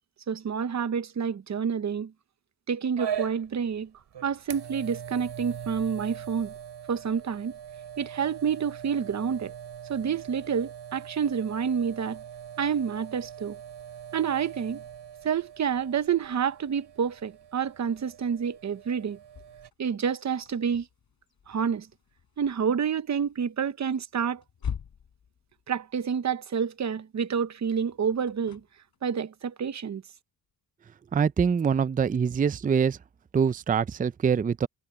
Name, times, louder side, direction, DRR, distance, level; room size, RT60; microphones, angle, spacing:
voice 1, 0.3-2.1 2.7-3.9 4.2-6.5 6.9-7.5 8.0-9.5 9.9-12.2 12.6-13.6 14.1-14.8 15.2-19.2 19.8-20.9 21.5-21.9 22.4-24.4 25.7-28.6 29.0-30.0, right 7 dB, 40° right, 0.8 m, -28 dB
sound 1, 3.0-19.7, right 9 dB, 90° right, 5.3 m, -41 dB
sound 2, 18.1-26.4 27.4-29.1, left 7 dB, 60° left, 5.6 m, -44 dB
voice 2, 31.1-33.0 33.3-34.7, right 6 dB, 20° right, 0.4 m, -24 dB
wide cardioid pair, 160°, 41 cm